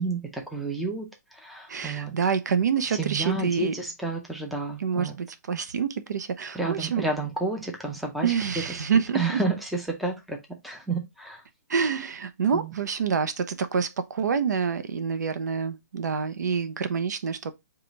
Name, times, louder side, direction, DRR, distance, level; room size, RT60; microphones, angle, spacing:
voice 1, 0.0-2.1 2.9-5.2 6.5-8.3 9.1-9.6 9.9-10.4 10.6-11.4 12.5-12.7, right 3 dB, ahead, 0.4 m, -30 dB
voice 2, 1.7-3.7 4.8-7.0 8.2-9.4 11.7-17.5, right 6 dB, 85° right, 0.7 m, -27 dB
4.8 x 2.3 x 3.9 m
hypercardioid pair, 175°, 9 cm